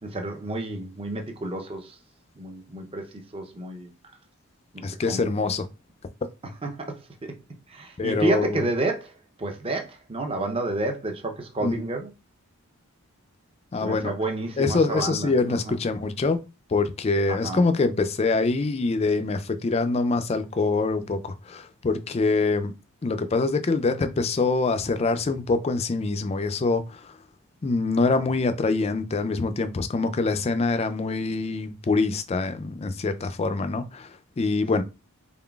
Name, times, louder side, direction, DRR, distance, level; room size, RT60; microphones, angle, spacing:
voice 1, 0.0-2.0 2.4-3.0 3.3-3.9 4.7-5.5 6.6-7.3 7.7-9.1 9.4-12.1 13.8-15.8 17.3-17.7 34.7-34.8, right 2 dB, 25° right, 0.6 m, -30 dB
voice 2, 4.8-5.7 8.0-8.7 11.6-11.8 13.7-14.1 14.6-16.4 16.7-22.7 23.0-27.1 27.6-34.8, left 3 dB, 30° left, 0.3 m, -25 dB
3.7 x 3.7 x 2.3 m
head